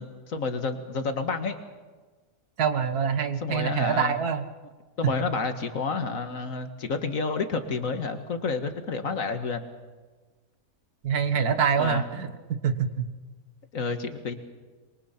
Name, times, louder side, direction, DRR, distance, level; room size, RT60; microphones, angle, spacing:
voice 1, 0.0-1.6 3.4-4.2 5.0-9.7 11.8-12.0 13.7-14.3, left 4 dB, 60° left, 8 dB, 2.0 m, -30 dB
voice 2, 2.6-4.4 11.0-12.3 12.6-13.1, right 7 dB, 85° right, 9 dB, 1.9 m, -25 dB
27.0 x 23.0 x 5.8 m, 1.3 s
omnidirectional pair, 1.6 m